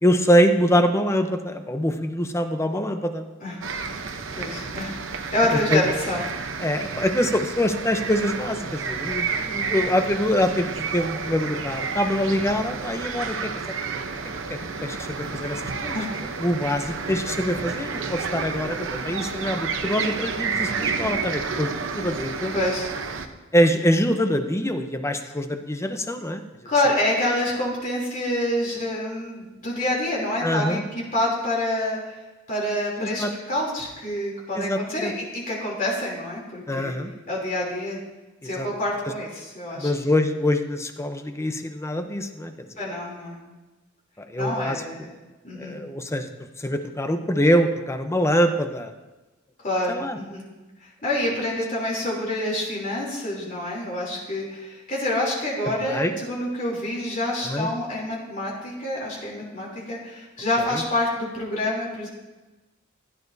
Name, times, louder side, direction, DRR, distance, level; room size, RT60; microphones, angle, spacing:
voice 1, 0.0-3.2 5.7-5.8 6.6-13.5 14.5-16.0 16.4-22.5 23.5-26.4 30.4-30.8 33.0-33.3 34.5-35.1 36.7-37.1 38.6-38.7 39.8-42.5 44.3-44.8 45.6-46.3 46.6-48.9 49.9-50.2 55.8-56.1 57.4-57.7 60.7-60.8, equal, 15° left, 7 dB, 0.7 m, -24 dB
sound 1, 3.6-23.3, right 5 dB, 75° right, 0.9 m, -30 dB
voice 2, 4.3-6.2 15.9-16.1 22.5-22.9 26.6-32.2 32.5-37.0 37.3-38.0 38.4-39.9 42.8-43.4 44.4-45.1 45.4-45.7 49.6-50.4 50.8-62.1, left 1 dB, 45° left, -4 dB, 3.2 m, -27 dB
15.5 x 11.0 x 2.7 m, 1.1 s
head